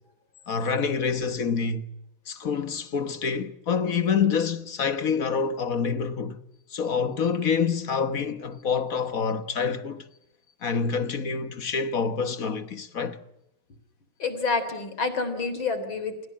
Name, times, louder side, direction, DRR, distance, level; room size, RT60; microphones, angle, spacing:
voice 1, 0.5-1.9 2.3-6.4 6.7-10.0 10.6-13.2, left 6 dB, 50° left, 1.6 m, -27 dB
voice 2, 14.2-16.3, left 4 dB, 80° left, 4.3 m, -28 dB
29.5 x 19.0 x 8.8 m
omnidirectional pair, 2.1 m